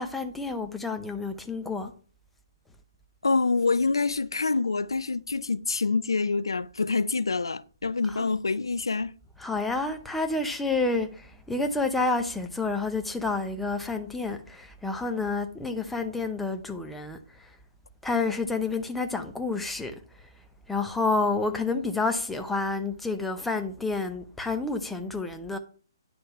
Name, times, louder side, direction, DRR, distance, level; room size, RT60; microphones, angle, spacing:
voice 1, 0.0-1.9 8.0-8.3 9.4-17.5 18.0-19.9 20.7-25.6, left 3 dB, 5° left, 0.8 m, -29 dB
voice 2, 3.2-9.1, left 4 dB, 90° left, 0.4 m, -26 dB
10.0 x 3.4 x 5.7 m
hypercardioid pair, 140°, 2 cm